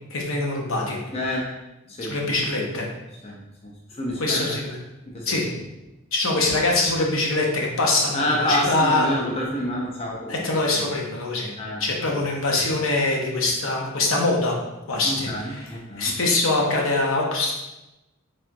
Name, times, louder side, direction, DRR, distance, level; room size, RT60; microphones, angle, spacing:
voice 1, 0.1-1.0 2.1-2.9 4.2-4.8 5.3-5.4 6.1-9.1 10.3-11.5 11.8-14.6 14.9-15.6 16.0-17.6, left 2 dB, 65° left, -1 dB, 0.7 m, -23 dB
voice 2, 1.1-1.5 1.9-2.1 2.6-2.7 3.2-4.6 5.1-5.4 8.1-10.4 10.7-11.0 11.6-11.8 12.1-12.2 15.0-16.1, left 1 dB, 30° left, -3 dB, 0.5 m, -28 dB
4.2 x 3.6 x 2.2 m, 0.98 s
head